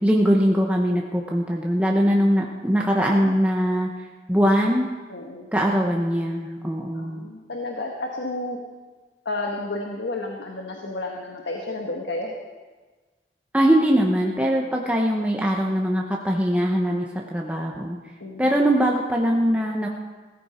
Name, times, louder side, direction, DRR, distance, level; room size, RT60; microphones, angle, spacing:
voice 1, 0.0-3.9 4.3-4.9 5.5-7.3 13.5-18.0 18.4-19.9, equal, 10° right, -1 dB, 0.9 m, -21 dB
voice 2, 5.1-5.5 7.0-8.6 9.2-12.3 18.2-18.5, left 2 dB, 85° left, 1 dB, 1.5 m, -31 dB
16.5 x 14.0 x 4.4 m, 1.3 s
head